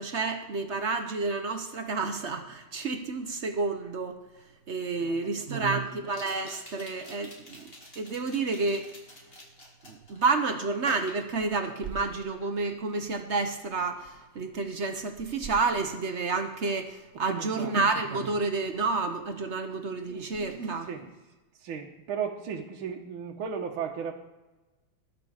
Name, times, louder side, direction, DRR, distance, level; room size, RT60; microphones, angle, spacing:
voice 1, 0.0-4.2 4.7-7.6 8.0-8.9 9.8-20.9, right 4 dB, 55° right, 6 dB, 0.7 m, -30 dB
sound 1, 4.3-4.4 6.0-10.2 10.8-12.1 12.4-12.7, left 1 dB, 25° left, 2.6 m, -48 dB
voice 2, 5.0-5.8 17.3-17.8 20.0-20.2 20.9-21.1 21.6-24.1, right 7 dB, 70° right, 1 dB, 1.7 m, -36 dB
19.5 x 6.8 x 4.9 m, 1.1 s
omnidirectional pair, 2.4 m